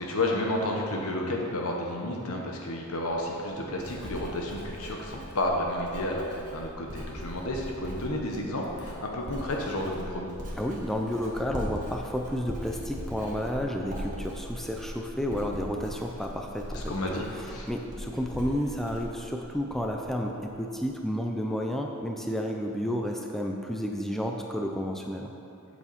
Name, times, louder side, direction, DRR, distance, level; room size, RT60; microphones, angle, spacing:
voice 1, 0.0-6.3 6.5-10.3 16.7-17.2 17.5-17.7, left 1 dB, 80° left, 0 dB, 1.2 m, -31 dB
Writing, 3.0-20.1 20.4-20.8, equal, 40° right, 1.4 m, -40 dB
voice 2, 10.6-25.3, equal, ahead, 1 dB, 0.5 m, -31 dB
8.3 x 6.9 x 4.3 m, 2.7 s
head